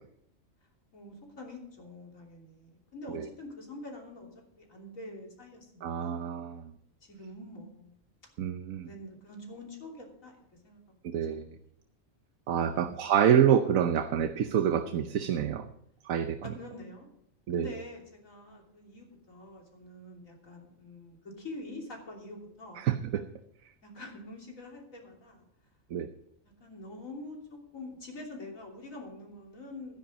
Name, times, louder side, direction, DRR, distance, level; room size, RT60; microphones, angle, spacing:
voice 1, 0.9-4.3 4.6-6.2 7.0-7.9 8.8-10.8 12.5-12.9 16.4-17.1 17.5-22.8 23.8-25.4 26.6-30.0, left 2 dB, 80° left, 0 dB, 3.5 m, -45 dB
voice 2, 5.8-6.7 8.4-8.9 11.1-11.6 12.5-15.7 16.0-16.4 17.5-17.7 22.8-23.2 25.9-26.1, right 9 dB, 85° right, 8 dB, 1.2 m, -27 dB
13.5 x 10.0 x 5.1 m, 0.73 s
omnidirectional pair, 1.4 m